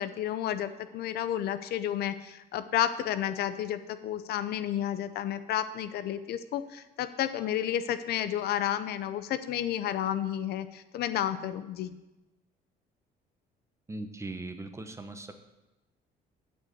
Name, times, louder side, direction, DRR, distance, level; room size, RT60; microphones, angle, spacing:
voice 1, 0.0-11.9, left 11 dB, 70° left, 12 dB, 0.7 m, -31 dB
voice 2, 13.9-15.3, right 2 dB, 15° right, 8 dB, 1.0 m, -39 dB
8.0 x 6.7 x 7.8 m, 1.0 s
cardioid pair, 110°, 17 cm